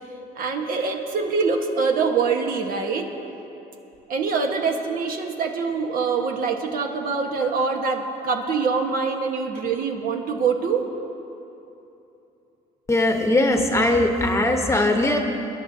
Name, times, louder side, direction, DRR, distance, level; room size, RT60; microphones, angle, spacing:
voice 1, 0.3-3.1 4.1-10.9, right 5 dB, 60° right, 3 dB, 1.3 m, -24 dB
voice 2, 12.9-15.2, left 1 dB, 15° left, 3 dB, 1.1 m, -20 dB
25.0 x 11.0 x 2.8 m, 2.9 s
cardioid pair, 110°, 17 cm